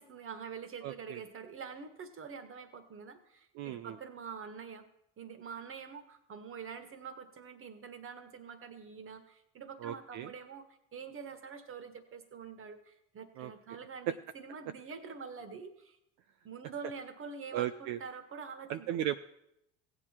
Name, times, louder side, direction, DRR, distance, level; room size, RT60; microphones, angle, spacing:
voice 1, 0.0-4.8 5.2-16.0 16.4-19.1, right 6 dB, 35° right, 9 dB, 1.7 m, -46 dB
voice 2, 0.8-1.2 3.6-4.0 9.8-10.3 13.4-13.5 17.5-18.0 18.7-19.2, right 12 dB, 50° right, 10 dB, 0.6 m, -36 dB
15.5 x 8.8 x 4.5 m, 0.80 s
hypercardioid pair, 85°, 37 cm